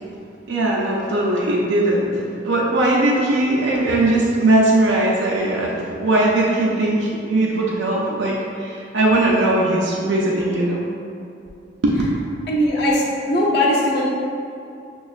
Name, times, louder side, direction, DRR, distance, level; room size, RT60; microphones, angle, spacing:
voice 1, 0.5-10.8 11.8-11.9, right 2 dB, 90° right, -4 dB, 0.5 m, -19 dB
voice 2, 12.5-14.0, left 1 dB, 60° left, -4 dB, 0.5 m, -19 dB
6.4 x 2.3 x 2.4 m, 2.6 s
head